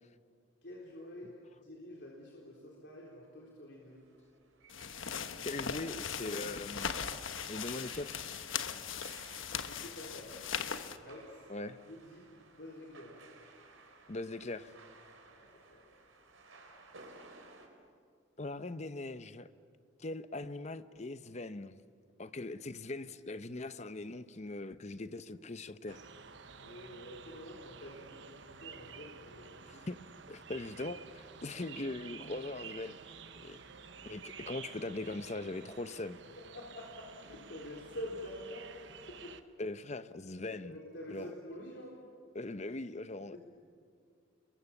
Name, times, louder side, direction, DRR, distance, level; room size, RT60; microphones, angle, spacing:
voice 1, 0.6-1.4 1.6-4.0 9.6-10.3 11.0-11.5 11.8-12.3 12.5-13.2 15.3-15.8 26.6-29.9 31.6-31.7 34.1-34.2 36.4-38.7 39.1-39.3 40.6-41.9 43.3-43.4, left 1 dB, 60° left, 3.9 m, -47 dB
sound 1, 3.8-17.7, right 3 dB, 80° right, 4.0 m, -58 dB
sound 2, 4.7-11.0, left 7 dB, 80° left, 1.2 m, -39 dB
voice 2, 5.4-7.0 7.5-8.2 11.5-11.8 14.1-14.7 18.4-19.5 20.0-21.8 22.2-26.0 29.6-30.0 30.3-33.0 33.4-33.6 34.0-36.2 39.6-40.8 41.1-41.3 42.3-43.4, left 2 dB, 35° left, 0.8 m, -41 dB
sound 3, 25.9-39.4, right 6 dB, 65° right, 1.1 m, -51 dB
29.5 x 22.5 x 7.2 m
head